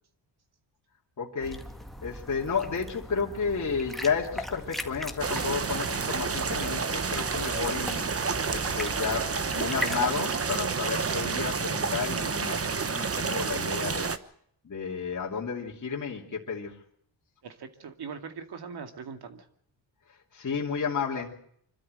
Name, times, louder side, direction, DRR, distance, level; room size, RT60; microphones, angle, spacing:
voice 1, 1.2-1.7 2.0-8.1 8.5-14.1 14.6-16.8 20.1-21.3, left 6 dB, 40° left, -3 dB, 2.9 m, -32 dB
sound 1, 1.4-10.2, equal, ahead, 1.8 m, -40 dB
sound 2, 5.2-14.2, right 5 dB, 30° right, 1.1 m, -29 dB
voice 2, 17.4-19.5, right 6 dB, 60° right, 6 dB, 2.5 m, -41 dB
25.5 x 13.0 x 7.8 m, 0.67 s
cardioid pair, 95°, 44 cm